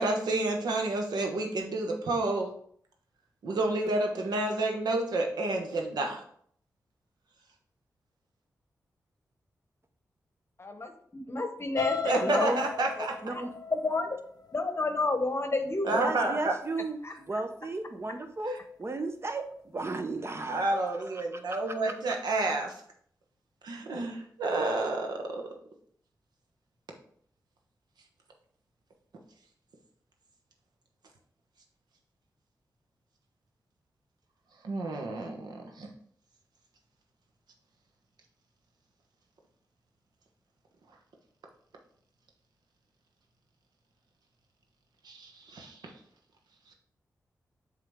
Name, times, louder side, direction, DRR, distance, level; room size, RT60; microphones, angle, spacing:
voice 1, 0.0-2.5 3.4-6.2 12.0-13.1 15.8-16.5 20.4-22.7 23.6-25.5 34.6-35.9 45.0-45.9, right 2 dB, 85° right, 2 dB, 1.1 m, -30 dB
voice 2, 10.6-12.5 13.0-13.1 13.3-13.4 13.7-14.2 14.5-16.2 17.0-17.1, left 3 dB, 40° left, 6 dB, 0.9 m, -30 dB
sound 1, 11.7-15.7 16.2-16.5 16.8-16.9, left 5 dB, 75° left, 0.7 m, -36 dB
voice 3, 12.2-12.7 13.2-13.5 15.9-20.8 21.1-21.2 21.7-21.8 22.1-22.2, right 2 dB, 40° right, 7 dB, 0.9 m, -34 dB
7.5 x 3.9 x 3.6 m, 0.63 s
cardioid pair, 50°, 7 cm